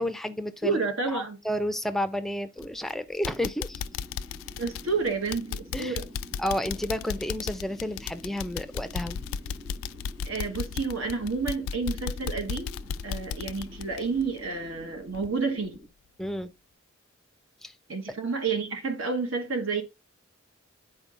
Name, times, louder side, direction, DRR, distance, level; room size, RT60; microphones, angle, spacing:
voice 1, 0.0-0.8 1.1-3.8 5.7-6.0 6.4-9.2 16.2-16.5 17.6-17.7, equal, ahead, 0.4 m, -31 dB
voice 2, 0.6-1.4 4.6-6.1 10.2-12.7 13.0-15.8 17.9-19.8, right 4 dB, 70° right, 1.4 m, -30 dB
sound 1, 2.6-2.9 3.2-14.8 15.1-15.3 15.7-15.8, left 7 dB, 70° left, 0.3 m, -35 dB
sound 2, 3.7-15.9, equal, 25° right, 1.9 m, -49 dB
10.5 x 4.4 x 2.5 m
head